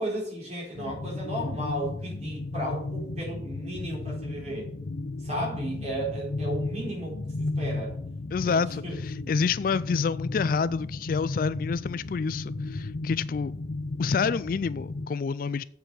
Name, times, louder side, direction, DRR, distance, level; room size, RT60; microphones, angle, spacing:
voice 1, 0.0-4.7 5.2-7.9 8.5-8.6 8.8-9.0, right 1 dB, 40° right, 4.4 m, -34 dB
sound 1, 0.7-15.1, left 2 dB, 65° left, 0.7 m, -34 dB
voice 2, 8.3-13.6 14.0-15.6, left 5 dB, 50° left, 0.3 m, -28 dB
7.8 x 6.8 x 7.0 m
head